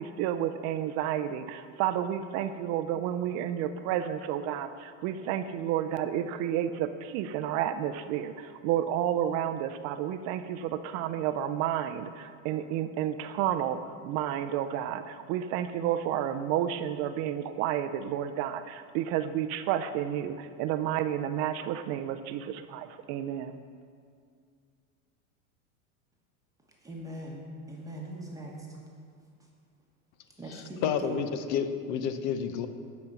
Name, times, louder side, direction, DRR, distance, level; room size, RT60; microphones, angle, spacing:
voice 1, 0.0-23.6, right 10 dB, 40° right, 10 dB, 0.4 m, -31 dB
voice 2, 26.8-28.8 30.4-31.2, right 1 dB, 10° right, -3 dB, 1.2 m, -40 dB
voice 3, 30.8-32.7, left 7 dB, 55° left, 10 dB, 0.7 m, -30 dB
7.9 x 5.2 x 7.2 m, 2.2 s
supercardioid pair, 130°, 41 cm